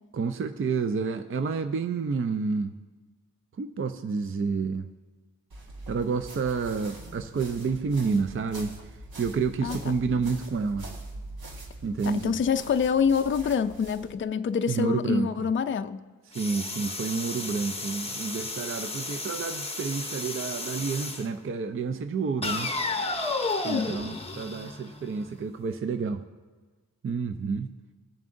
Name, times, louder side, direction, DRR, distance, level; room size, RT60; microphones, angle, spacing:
voice 1, 0.1-2.7 3.6-4.9 5.9-8.7 9.2-10.9 11.8-12.3 14.7-15.5 16.3-22.7 23.6-26.2 27.0-27.7, right 5 dB, 35° right, 0.5 m, -29 dB
sound 1, 5.5-14.1, right 1 dB, 80° right, 1.2 m, -43 dB
voice 2, 12.1-16.0 23.6-24.0, left 6 dB, 35° left, 0.4 m, -26 dB
sound 2, 16.3-21.3 22.4-25.3, left 3 dB, 15° left, 0.7 m, -33 dB
20.5 x 7.2 x 2.6 m
cardioid pair, 65°, 35 cm